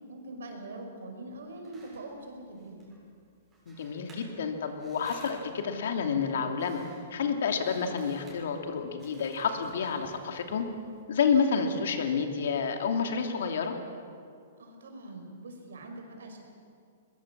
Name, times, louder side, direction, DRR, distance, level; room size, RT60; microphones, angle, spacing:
voice 1, 0.1-2.8 14.6-16.4, right 2 dB, 90° right, 4 dB, 5.2 m, -43 dB
sound 1, 1.3-11.0, right 1 dB, 10° right, 6.4 m, -56 dB
voice 2, 3.7-6.8 7.1-10.7 11.1-13.8, left 6 dB, 70° left, 5 dB, 2.7 m, -29 dB
21.5 x 21.0 x 7.5 m, 2.3 s
hypercardioid pair, 160°, 0 cm